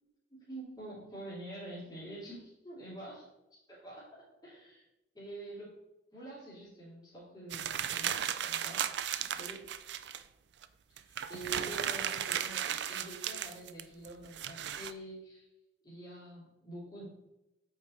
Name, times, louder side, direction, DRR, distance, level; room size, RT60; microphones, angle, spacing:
voice 1, 0.3-3.2 3.8-4.8 5.1-5.7 6.1-9.6 10.9-15.4 15.8-17.0, right 1 dB, 20° left, -8 dB, 2.9 m, -47 dB
sound 1, 7.5-10.2 10.6-10.7 11.0-14.9, right 9 dB, 75° right, 0.4 m, -35 dB
8.4 x 4.7 x 4.1 m, 0.91 s
head